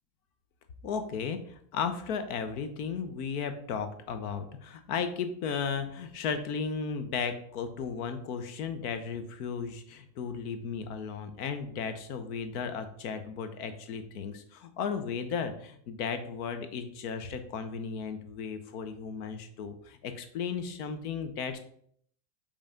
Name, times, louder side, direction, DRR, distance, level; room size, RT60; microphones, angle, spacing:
voice 1, 0.8-21.6, left 6 dB, 85° left, 9 dB, 1.1 m, -35 dB
5.6 x 3.4 x 5.1 m, 0.64 s
cardioid pair, 155°, 44 cm